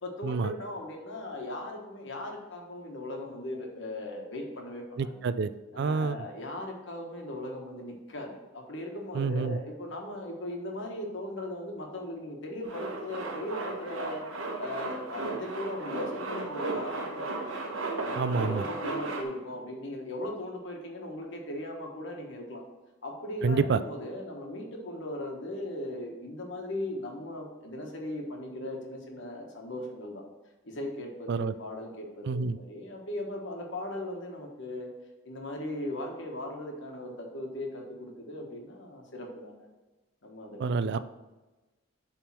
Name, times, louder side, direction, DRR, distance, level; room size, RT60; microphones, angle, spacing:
voice 1, 0.0-5.1 5.7-14.2 14.6-17.5 18.0-22.6 23.0-30.2 30.6-34.9 35.2-39.7 40.2-41.0, left 1 dB, 65° left, 1 dB, 1.3 m, -38 dB
voice 2, 5.0-5.5 5.8-6.2 9.1-9.6 18.2-18.6 23.4-23.8 31.3-31.5 32.3-32.6 40.6-41.0, right 4 dB, 60° right, 13 dB, 0.4 m, -27 dB
Male speech man speaking, 12.6-19.2, right 2 dB, 90° right, 1.1 m, -35 dB
7.2 x 3.6 x 5.9 m, 1.1 s
head